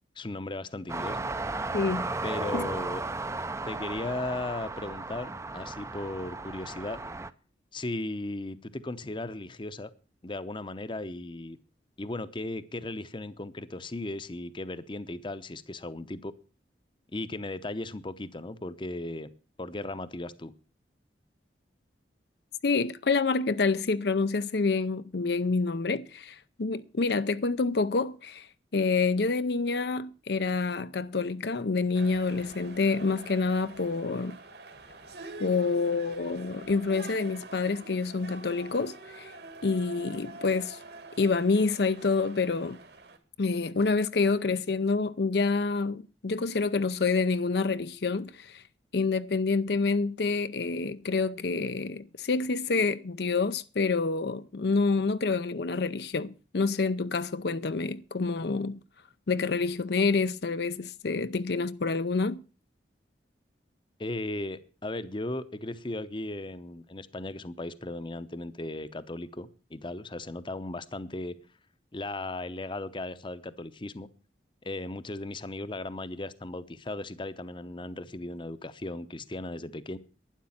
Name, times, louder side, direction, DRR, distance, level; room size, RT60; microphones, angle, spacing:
voice 1, 0.2-1.2 2.2-3.0 3.7-7.0 7.7-9.9 10.2-11.6 12.0-16.3 17.1-19.3 19.6-20.5 64.0-71.3 71.9-74.1 74.6-80.0, left 2 dB, 30° left, 0.8 m, -36 dB
sound 1, 0.9-7.3, right 3 dB, 15° right, 0.6 m, -35 dB
voice 2, 1.7-2.1 2.5-2.6 22.6-28.5 28.7-34.4 35.4-39.3 39.6-40.8 41.2-42.8 43.4-48.6 48.9-58.8 59.3-62.4, left 4 dB, 65° left, 0.6 m, -27 dB
sound 2, 31.9-43.2, right 2 dB, 65° right, 2.2 m, -46 dB
12.0 x 9.8 x 7.2 m
head